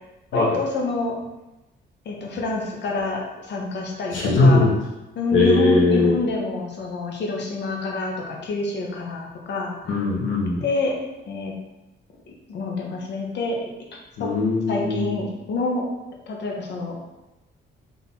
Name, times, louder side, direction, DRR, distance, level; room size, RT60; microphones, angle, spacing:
voice 1, 0.3-1.2 2.0-4.6 5.2-9.7 10.6-11.0 11.3-11.5 12.5-13.6 13.9-14.3 14.7-15.8 16.3-17.0, left 3 dB, 60° left, 0 dB, 1.0 m, -27 dB
voice 2, 4.1-4.7 5.3-6.1 9.9-10.6 14.2-15.2, left 2 dB, 80° left, -3 dB, 1.3 m, -19 dB
3.8 x 2.8 x 4.1 m, 0.99 s
cardioid pair, 90°, 20 cm